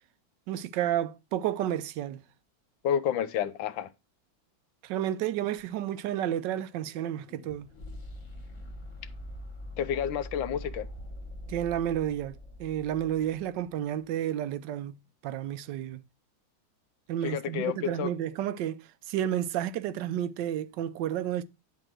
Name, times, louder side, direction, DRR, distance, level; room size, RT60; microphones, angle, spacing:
voice 1, 0.5-2.2 4.8-7.7 11.5-15.0 15.2-16.0 17.1-21.4, right 11 dB, 75° right, 1.3 m, -31 dB
voice 2, 2.8-3.9 9.8-10.9 17.2-18.1, left 9 dB, 85° left, 1.5 m, -30 dB
sound 1, 5.6-13.7, left 1 dB, 40° left, 1.9 m, -44 dB
9.9 x 3.7 x 6.1 m
omnidirectional pair, 2.0 m